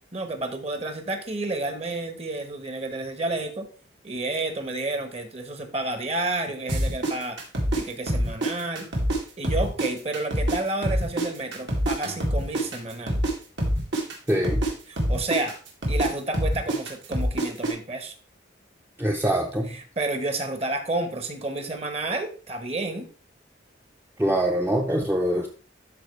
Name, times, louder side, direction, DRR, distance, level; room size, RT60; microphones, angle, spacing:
voice 1, 0.1-3.7 4.0-7.4 7.7-8.9 9.4-13.2 14.9-15.6 15.9-18.1 19.7-23.1, right 2 dB, 35° right, 7 dB, 1.2 m, -30 dB
sound 1, 6.7-9.2 9.4-13.3 13.6-17.7, right 1 dB, 70° right, 2.3 m, -25 dB
voice 2, 14.3-14.6 19.0-19.7 24.2-25.5, right 1 dB, 10° right, 1 dB, 0.6 m, -24 dB
12.0 x 4.4 x 3.2 m, 0.38 s
head